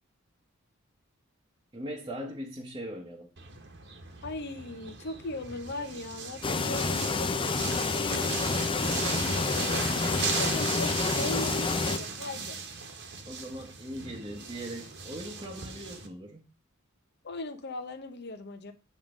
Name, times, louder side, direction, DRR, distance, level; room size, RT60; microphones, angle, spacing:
voice 1, 1.7-3.3 13.2-16.4, equal, 20° right, 1.1 m, -40 dB
sound 1, 3.4-16.1, right 5 dB, 55° right, 1.3 m, -37 dB
voice 2, 4.2-7.3 7.9-8.3 8.8-12.6 17.2-18.7, left 2 dB, 50° left, 0.8 m, -39 dB
sound 2, 6.4-12.0, left 4 dB, 25° left, 0.5 m, -28 dB
8.7 x 3.7 x 5.0 m
head